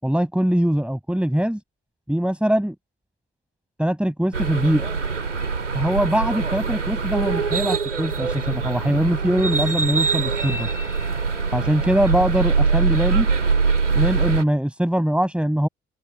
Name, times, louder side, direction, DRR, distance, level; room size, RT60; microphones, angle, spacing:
voice 1, 0.0-1.6 2.1-2.7 3.8-4.9 5.7-10.7 11.5-13.3 13.9-15.7, equal, 5° right, 7.8 m, -22 dB
sound 1, 4.3-14.4, right 4 dB, 85° right, 2.9 m, -23 dB
open air
figure-of-eight pair, 45°, 34 cm